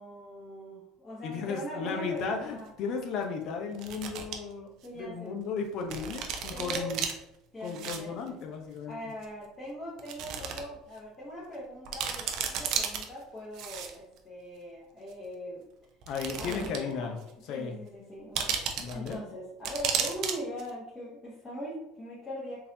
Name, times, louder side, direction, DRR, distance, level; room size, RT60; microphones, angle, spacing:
voice 1, 0.0-2.7 4.8-5.4 6.5-7.0 7.5-8.4 8.9-15.6 16.4-17.2 17.4-22.7, equal, 25° left, -7 dB, 1.0 m, -41 dB
voice 2, 1.2-7.0 7.6-9.1 16.1-17.2 17.4-17.8 18.8-19.2, left 5 dB, 60° left, 3 dB, 0.7 m, -35 dB
sound 1, 2.2-2.3 3.7-4.4 4.8-4.9 5.9-7.1 7.6-8.0 8.3-8.4 9.2-9.3 10.0-10.6 11.0-11.1 11.5-11.6 11.8-13.0 13.5-14.2 15.1-15.2 16.0-16.9 17.2-17.3 18.3-19.1 19.6-20.3 20.6-20.7, right 7 dB, 65° right, 0.5 m, -33 dB
3.9 x 2.6 x 2.7 m, 0.85 s
supercardioid pair, 95°, 0 cm